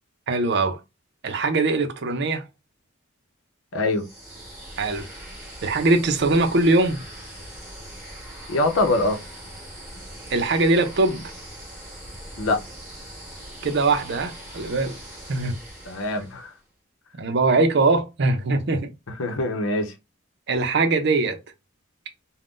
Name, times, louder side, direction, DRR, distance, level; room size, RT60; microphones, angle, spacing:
voice 1, 0.3-0.8 1.2-2.4 4.8-5.1 5.6-7.0 10.3-11.2 13.6-15.0 15.3-15.6 17.2-18.9 20.5-21.4, right 3 dB, 60° right, 0.6 m, -21 dB
voice 2, 3.7-4.1 8.5-9.2 12.4-12.6 15.9-16.5 19.2-19.9, left 2 dB, 90° left, 0.7 m, -23 dB
sound 1, 3.9-16.6, right 1 dB, 5° right, 1.1 m, -41 dB
2.5 x 2.1 x 3.5 m
head